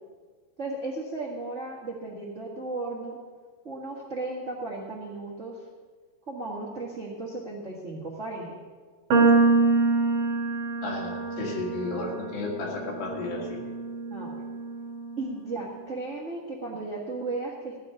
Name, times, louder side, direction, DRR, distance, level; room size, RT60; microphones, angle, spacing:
voice 1, 0.6-3.2 3.6-5.6 6.3-8.6 14.1-14.4 15.2-17.8, right 2 dB, 85° right, -4 dB, 0.6 m, -35 dB
sound 1, 9.1-15.4, right 3 dB, 60° right, 2.8 m, -26 dB
voice 2, 10.8-13.6, left 2 dB, 70° left, -2 dB, 4.2 m, -33 dB
15.0 x 5.3 x 9.8 m, 1.5 s
omnidirectional pair, 4.5 m